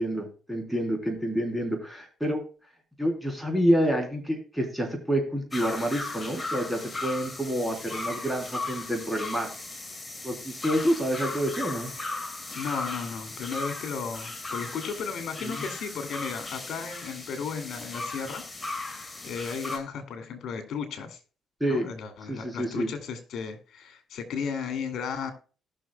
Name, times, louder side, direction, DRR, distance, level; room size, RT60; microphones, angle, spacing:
voice 1, 0.0-2.4 3.0-9.5 10.2-11.9 15.4-15.6 21.6-21.9 22.3-22.9, equal, ahead, 2 dB, 3.6 m, -28 dB
sound 1, 5.5-19.8, left 2 dB, 20° left, 2.1 m, -37 dB
voice 2, 12.5-18.4 18.8-21.2 21.7-25.3, left 6 dB, 70° left, 8 dB, 2.5 m, -35 dB
19.0 x 6.4 x 2.3 m, 0.37 s
cardioid pair, 90°, 0 cm